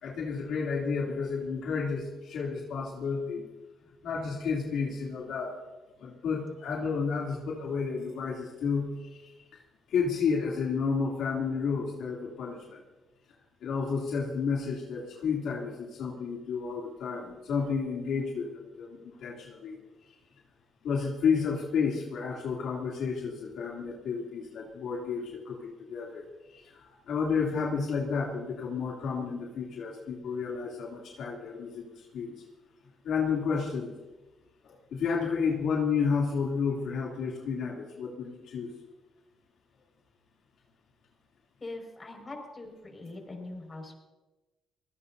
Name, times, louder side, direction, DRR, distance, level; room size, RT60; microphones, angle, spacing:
voice 1, 0.0-3.5 4.0-5.5 6.0-9.3 9.9-12.8 13.6-19.8 20.8-26.2 26.5-32.3 33.0-33.9 34.6-38.7, left 5 dB, 75° left, -3 dB, 3.0 m, -31 dB
voice 2, 41.6-44.0, left 2 dB, 30° left, 2 dB, 5.6 m, -42 dB
25.5 x 18.5 x 2.8 m, 1.1 s
cardioid pair, 90°, 0 cm